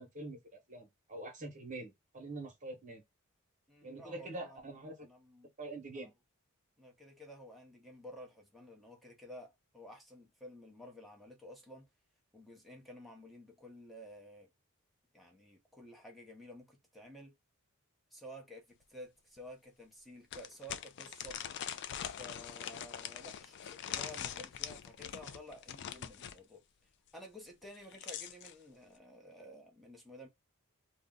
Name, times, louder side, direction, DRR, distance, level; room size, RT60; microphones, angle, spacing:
voice 1, 0.0-3.0 3.8-5.0 5.6-6.1, right 2 dB, 35° right, 1.0 m, -45 dB
voice 2, 3.7-4.7 5.0-5.5 5.9-6.1 6.8-11.9 12.3-14.5 15.1-17.3 18.1-21.4 22.2-26.6 27.1-30.3, equal, ahead, 0.7 m, -52 dB
sound 1, 18.8-18.9 19.4-19.5 20.3-26.4 27.6-28.5, left 9 dB, 55° left, 0.3 m, -43 dB
2.6 x 2.1 x 3.6 m
head